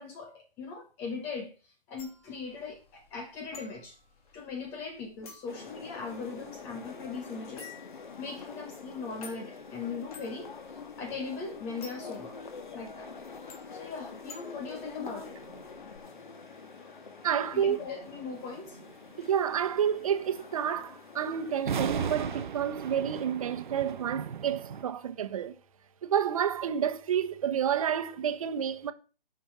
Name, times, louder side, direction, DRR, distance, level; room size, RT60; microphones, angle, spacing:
voice 1, 0.0-1.5 1.9-4.0 4.3-10.5 11.0-12.4 12.7-13.1 13.7-15.4 17.5-18.8, left 4 dB, 10° left, 0.5 m, -39 dB
sound 1, 2.0-16.0, left 5 dB, 40° left, 3.5 m, -53 dB
sound 2, 5.5-22.5, left 4 dB, 55° left, 2.1 m, -46 dB
voice 2, 17.2-17.8 19.2-25.5 26.0-28.9, right 8 dB, 35° right, 1.1 m, -29 dB
sound 3, 21.6-24.8, right 7 dB, 55° right, 0.7 m, -35 dB
11.5 x 5.4 x 7.5 m
figure-of-eight pair, 140°, 29 cm